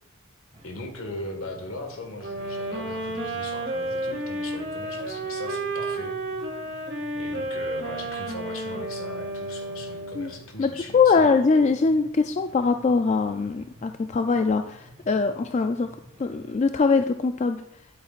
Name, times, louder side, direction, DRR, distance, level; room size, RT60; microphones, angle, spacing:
sound 1, 0.5-16.5, right 1 dB, 25° right, 1.2 m, -51 dB
voice 1, 0.6-6.1 7.2-11.3, left 2 dB, 75° left, 4 dB, 1.7 m, -39 dB
sound 2, 2.2-10.4, right 1 dB, 55° right, 2.1 m, -31 dB
voice 2, 10.6-15.9 16.2-17.6, left 4 dB, 35° left, 8 dB, 0.3 m, -22 dB
11.0 x 8.5 x 2.5 m, 0.78 s
head